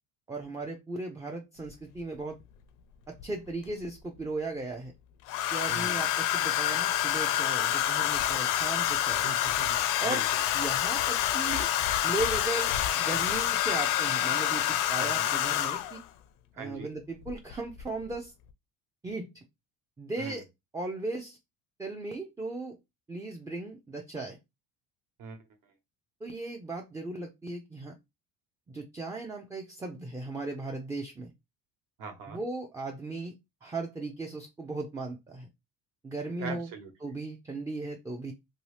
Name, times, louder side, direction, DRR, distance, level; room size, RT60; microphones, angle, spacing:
voice 1, 0.3-2.4 3.1-4.9 5.5-9.3 10.0-10.2 10.5-11.7 12.0-16.0 16.6-18.3 19.0-19.4 20.0-20.4 20.7-21.4 21.8-22.8 23.1-24.4 26.2-27.9 28.7-31.3 32.3-33.3 33.6-35.5 36.0-36.7 37.0-38.3, right 2 dB, 10° right, 0.3 m, -37 dB
Domestic sounds home sounds, 1.7-1.8 3.2-3.9 5.3-16.0 17.3-17.5 17.8-18.2, left 12 dB, 65° left, 0.5 m, -27 dB
voice 2, 5.7-6.1 9.2-10.2 15.0-15.3 16.5-16.9 20.2-20.4 25.2-25.4 32.0-32.4 36.4-37.1, right 5 dB, 70° right, 1.1 m, -42 dB
2.7 x 2.6 x 3.2 m
cardioid pair, 130°, 35 cm